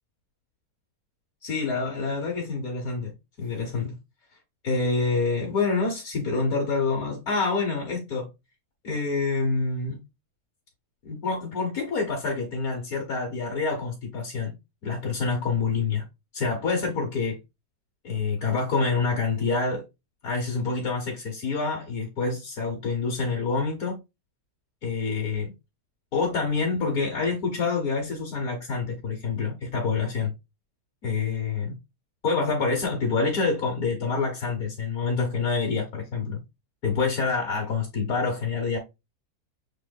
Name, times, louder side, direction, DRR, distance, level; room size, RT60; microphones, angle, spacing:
voice 1, 1.4-3.9 4.6-8.3 8.8-10.0 11.0-14.5 14.8-16.0 16.3-17.4 18.0-19.8 20.2-24.0 24.8-25.5 26.1-30.3 31.0-31.8 32.2-36.4 36.8-38.8, left 4 dB, 65° left, 1.7 m, -27 dB
6.3 x 3.8 x 2.2 m
omnidirectional pair, 1.7 m